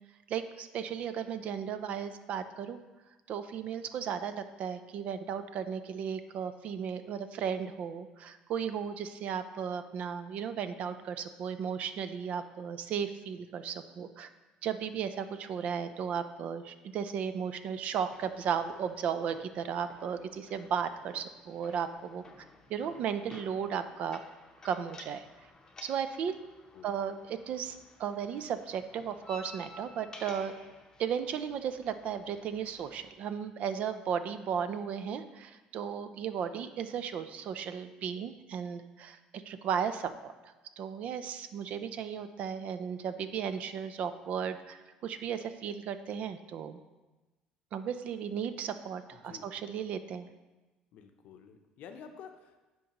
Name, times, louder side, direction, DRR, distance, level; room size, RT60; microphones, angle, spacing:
voice 1, 0.3-2.8 3.3-14.3 14.6-24.2 24.6-25.3 25.8-26.4 26.8-30.5 31.0-46.8 47.7-50.3, right 7 dB, 60° right, 10 dB, 0.4 m, -35 dB
sound 1, 18.1-33.1, left 2 dB, 25° left, 0.7 m, -54 dB
voice 2, 49.1-49.5 50.9-52.7, left 7 dB, 65° left, 6 dB, 0.6 m, -50 dB
10.5 x 3.8 x 2.9 m, 1.1 s
cardioid pair, 105°, 3 cm